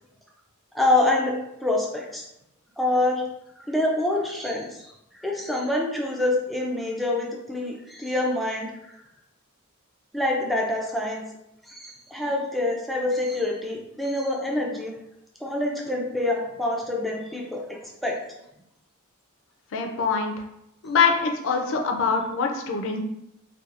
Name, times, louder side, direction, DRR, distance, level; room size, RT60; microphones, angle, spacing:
voice 1, 0.7-2.3 2.8-3.2 3.7-9.0 10.1-11.2 11.7-14.9 15.4-18.2, left 2 dB, ahead, -1 dB, 0.4 m, -26 dB
voice 2, 19.7-20.3 20.8-23.0, left 5 dB, 60° left, 3 dB, 0.4 m, -24 dB
2.8 x 2.2 x 2.4 m, 0.83 s
head